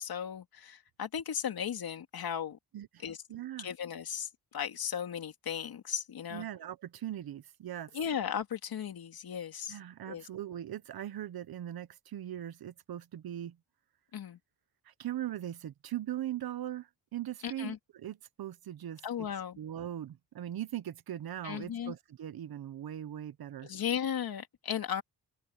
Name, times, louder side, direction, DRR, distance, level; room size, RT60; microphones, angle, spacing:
voice 1, 0.0-2.6 3.0-3.2 3.6-6.5 7.9-9.8 10.1-10.3 14.1-14.4 17.4-17.8 19.0-19.6 21.4-21.9 23.6-25.0, left 8 dB, 65° left, 2.6 m, -36 dB
voice 2, 2.7-3.0 3.3-3.7 6.3-8.0 9.7-13.6 14.9-19.0 19.6-23.7, right 12 dB, 65° right, 1.1 m, -40 dB
cardioid pair, 100°, 40 cm